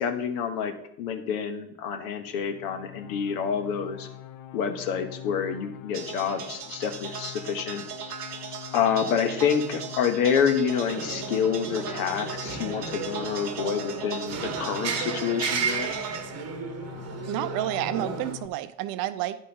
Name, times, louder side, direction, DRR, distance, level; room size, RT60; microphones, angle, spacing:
voice 1, 0.0-4.1 4.5-7.8 8.7-16.0, left 7 dB, 65° left, 8 dB, 1.2 m, -28 dB
sound 1, 2.2-18.5, left 12 dB, 40° left, 0.8 m, -44 dB
sound 2, 5.9-16.2, right 6 dB, 85° right, 0.9 m, -38 dB
sound 3, 10.9-18.3, right 6 dB, 35° right, 1.1 m, -34 dB
voice 2, 17.3-19.4, right 14 dB, 50° right, 13 dB, 0.6 m, -30 dB
9.9 x 5.5 x 4.1 m, 0.74 s
figure-of-eight pair, 65°, 45 cm